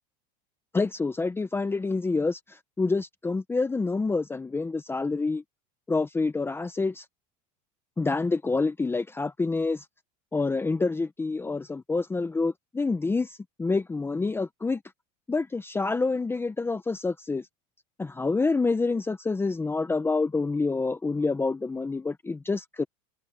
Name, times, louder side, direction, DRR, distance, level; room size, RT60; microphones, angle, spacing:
voice 1, 0.7-5.4 5.9-7.0 8.0-9.8 10.3-14.8 15.3-17.5 18.0-22.8, left 3 dB, 10° left, 0.9 m, -27 dB
supercardioid pair, 120°, 21 cm